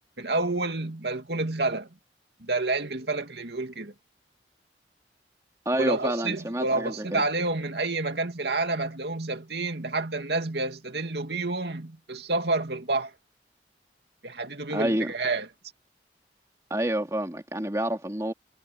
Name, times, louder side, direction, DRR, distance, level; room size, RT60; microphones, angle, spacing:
voice 1, 0.2-1.9 2.4-3.9 5.8-13.1 14.2-15.5, right 3 dB, 70° right, 2.4 m, -29 dB
voice 2, 5.7-7.2 14.7-15.1 16.7-18.3, right 1 dB, 20° right, 2.5 m, -28 dB
head